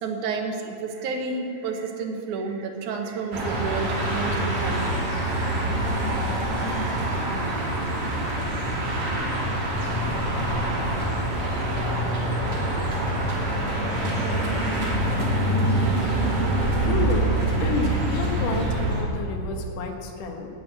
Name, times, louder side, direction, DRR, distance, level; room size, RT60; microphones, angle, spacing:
voice 1, 0.0-5.1, right 4 dB, 70° right, 3 dB, 2.5 m, -30 dB
sound 1, 3.3-19.0, right 1 dB, 40° right, 3.5 m, -25 dB
voice 2, 16.8-20.5, left 5 dB, 70° left, 3 dB, 2.8 m, -30 dB
11.0 x 10.0 x 9.4 m, 2.9 s
omnidirectional pair, 3.9 m